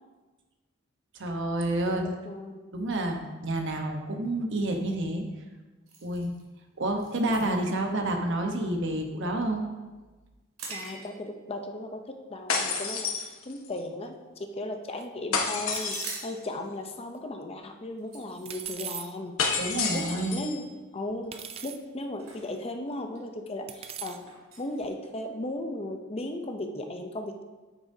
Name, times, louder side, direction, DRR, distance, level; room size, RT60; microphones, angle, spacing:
voice 1, 1.1-2.0 2.7-5.3 6.0-6.3 6.8-9.6 19.6-20.4, right 1 dB, 60° right, 3 dB, 1.1 m, -29 dB
voice 2, 1.9-2.7 10.7-13.1 13.4-19.4 19.9-20.7 20.9-21.3 21.6-24.2 24.6-27.4, left 1 dB, 30° left, 5 dB, 0.6 m, -36 dB
sound 1, 5.9-11.5 12.0-12.2 12.7-13.1 13.4-14.6 14.8-14.9 15.1-15.3 15.6-25.6, right 3 dB, 90° right, 2.3 m, -47 dB
sound 2, 12.5-13.8 15.3-16.3 19.4-20.6, left 5 dB, 75° left, 1.1 m, -30 dB
sound 3, 15.0-15.1 15.7-16.2 18.5-19.1 20.0-20.1 21.3-21.8 22.6-22.7 23.7-24.2, right 8 dB, 30° right, 0.4 m, -39 dB
9.0 x 8.8 x 2.7 m, 1.2 s
head